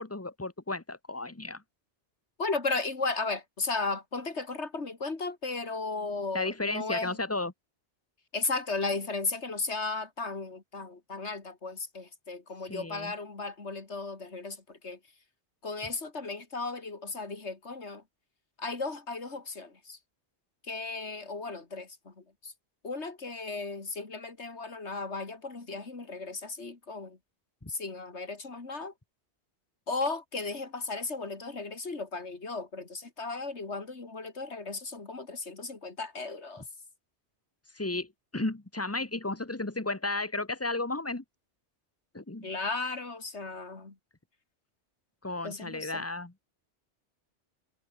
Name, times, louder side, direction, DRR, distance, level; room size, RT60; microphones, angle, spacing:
voice 1, 0.0-1.6 6.3-7.5 12.7-13.1 27.6-27.7 37.7-41.2 42.1-42.5 45.2-46.3, left 2 dB, 15° left, 1.4 m, -34 dB
voice 2, 2.4-7.2 8.3-15.0 15.6-18.0 18.6-20.0 20.7-22.5 22.8-27.2 27.7-28.9 29.9-36.6 42.4-43.9 45.4-46.0, left 3 dB, 75° left, 3.0 m, -35 dB
omnidirectional pair, 1.2 m